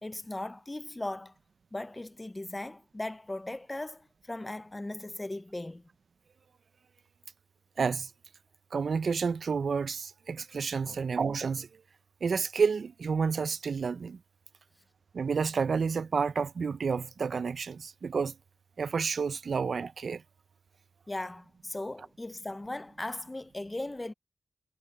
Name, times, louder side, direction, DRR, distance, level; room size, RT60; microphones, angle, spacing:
voice 1, 0.0-1.3 1.7-5.8 10.8-11.0 21.1-24.1, left 2 dB, 20° left, 0.5 m, -38 dB
voice 2, 7.8-8.1 8.7-11.7 12.2-14.2 15.1-18.3 18.8-20.2, right 5 dB, 70° right, 0.4 m, -30 dB
wide cardioid pair, 95°, 0 cm